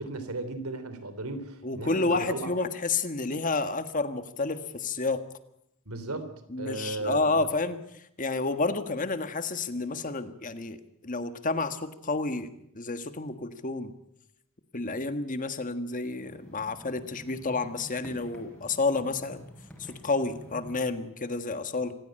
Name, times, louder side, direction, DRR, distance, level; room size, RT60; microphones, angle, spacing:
voice 1, 0.0-2.5 5.8-6.3 6.6-7.3, right 2 dB, 75° right, 11 dB, 3.3 m, -35 dB
voice 2, 1.6-5.2 6.5-10.8 11.0-12.5 12.7-13.9 14.7-19.4 19.8-21.9, left 3 dB, 35° left, 10 dB, 1.5 m, -30 dB
sound 1, 16.1-20.7, equal, 5° left, 5.6 m, -49 dB
26.5 x 15.5 x 8.8 m, 0.80 s
head